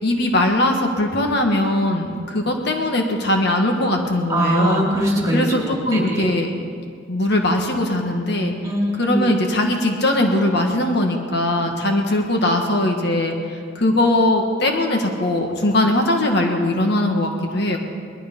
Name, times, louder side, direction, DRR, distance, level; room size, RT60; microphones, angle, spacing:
voice 1, 0.0-4.9 5.3-6.5 7.1-8.5 9.0-17.8, left 1 dB, 60° left, 3 dB, 1.5 m, -20 dB
voice 2, 4.3-6.3 8.6-9.3, right 1 dB, 20° right, -2 dB, 3.0 m, -22 dB
20.0 x 12.5 x 5.3 m, 2.2 s
head